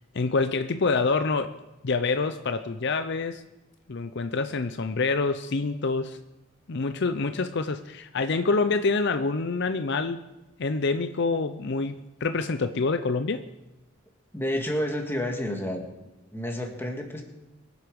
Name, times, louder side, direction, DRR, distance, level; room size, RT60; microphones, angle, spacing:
voice 1, 0.1-1.5 1.8-3.4 3.9-6.2 6.7-10.2 10.6-13.5, left 4 dB, 60° left, 9 dB, 0.6 m, -26 dB
voice 2, 14.3-15.8 16.3-17.2, left 1 dB, 10° left, 2 dB, 1.9 m, -29 dB
23.0 x 8.2 x 5.3 m, 1.0 s
head